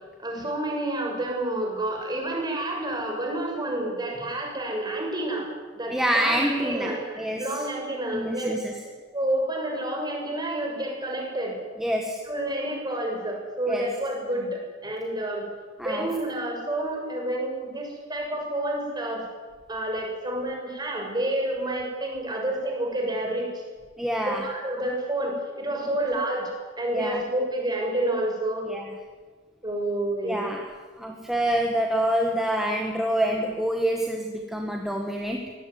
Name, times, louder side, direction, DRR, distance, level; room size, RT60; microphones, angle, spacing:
voice 1, 0.2-5.5 5.7-8.5 9.1-11.6 12.3-15.5 15.8-19.3 19.7-23.6 24.3-26.5 26.8-28.7 29.6-30.4, right 1 dB, 20° right, 1 dB, 6.5 m, -29 dB
voice 2, 5.9-7.7 8.1-8.7 11.8-12.3 13.7-13.9 15.8-16.2 24.0-24.5 26.9-27.2 28.6-28.9 30.2-35.5, equal, ahead, 1 dB, 1.9 m, -27 dB
24.0 x 18.0 x 9.7 m, 1.5 s
head